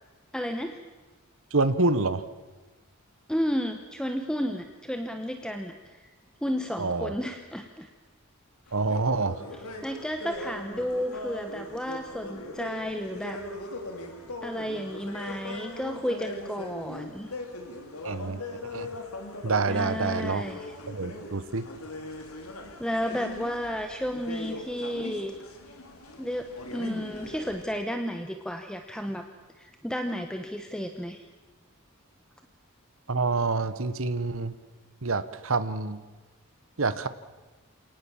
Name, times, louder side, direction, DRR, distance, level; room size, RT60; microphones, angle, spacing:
voice 1, 0.3-0.8 3.3-6.0 6.4-7.9 9.8-13.4 14.4-17.3 19.7-20.6 22.8-25.4 26.2-29.3 29.6-31.3, equal, 5° left, 6 dB, 1.0 m, -32 dB
voice 2, 1.5-2.2 6.8-7.1 8.7-9.4 18.0-18.4 18.7-18.9 19.4-20.4 20.9-21.7 33.1-34.6 35.0-36.0 36.8-37.1, right 3 dB, 65° right, 13 dB, 1.2 m, -27 dB
sound 1, 8.7-27.6, left 1 dB, 85° left, 3.5 m, -40 dB
27.5 x 18.5 x 7.3 m, 1.2 s
head